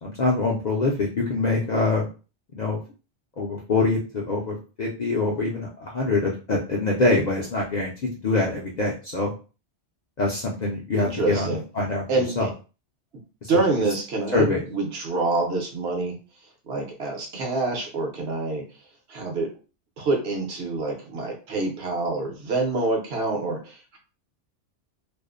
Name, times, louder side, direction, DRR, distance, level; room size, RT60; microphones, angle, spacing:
voice 1, 0.0-2.1 2.5-2.8 3.4-7.9 8.2-9.3 10.2-12.5 13.4-13.5 14.3-14.6, left 3 dB, 55° left, -2 dB, 0.5 m, -24 dB
voice 2, 11.0-11.6 12.1-12.4 13.5-16.2 16.7-18.6 19.1-19.5 20.0-24.0, right 3 dB, 70° right, 1 dB, 1.0 m, -26 dB
2.5 x 2.0 x 2.4 m, 0.34 s
omnidirectional pair, 1.2 m